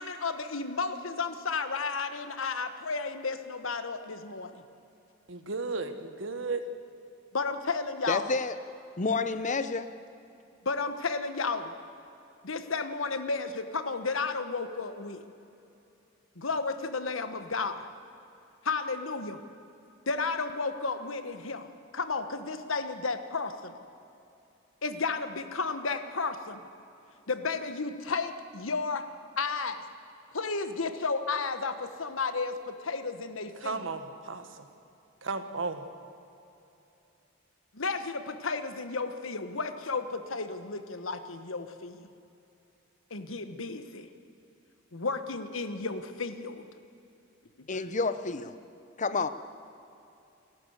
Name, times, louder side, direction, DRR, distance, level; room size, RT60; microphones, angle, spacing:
voice 1, 0.0-4.6 7.3-8.3 10.6-11.7 12.4-15.2 16.4-17.9 18.6-19.4 20.1-21.7 21.9-23.9 24.8-26.7 27.3-29.1 29.4-29.8 30.3-33.8 37.7-42.1 43.1-44.1 44.9-46.7, left 4 dB, 85° left, 9 dB, 1.3 m, -33 dB
voice 2, 5.3-6.6 33.6-34.7 35.2-35.8, right 3 dB, 70° right, 9 dB, 1.5 m, -34 dB
voice 3, 8.1-8.6 9.0-9.9 47.7-48.5 49.0-49.3, left 4 dB, 40° left, 12 dB, 0.8 m, -29 dB
28.5 x 12.0 x 8.2 m, 2.8 s
head